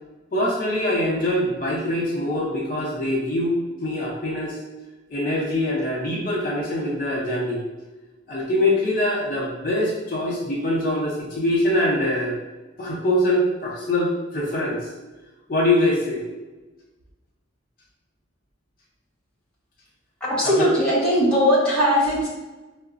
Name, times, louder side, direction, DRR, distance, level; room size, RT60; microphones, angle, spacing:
voice 1, 0.3-4.6 5.1-7.6 8.3-12.3 12.8-14.9 15.5-16.2 20.4-20.7, left 1 dB, 45° left, -5 dB, 0.6 m, -23 dB
voice 2, 20.2-22.3, equal, 5° left, -8 dB, 0.9 m, -19 dB
4.7 x 2.1 x 2.4 m, 1.1 s
head